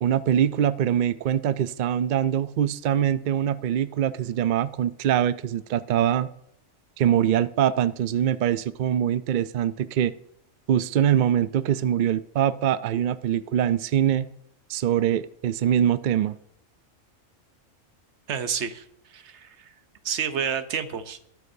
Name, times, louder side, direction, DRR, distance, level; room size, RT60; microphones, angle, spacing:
voice 1, 0.0-6.3 7.0-10.1 10.7-14.3 14.7-16.4, right 10 dB, 85° right, 15 dB, 0.4 m, -23 dB
voice 2, 18.3-19.7 20.0-21.2, right 7 dB, 60° right, 11 dB, 1.1 m, -30 dB
20.5 x 8.4 x 2.7 m, 0.73 s
omnidirectional pair, 1.4 m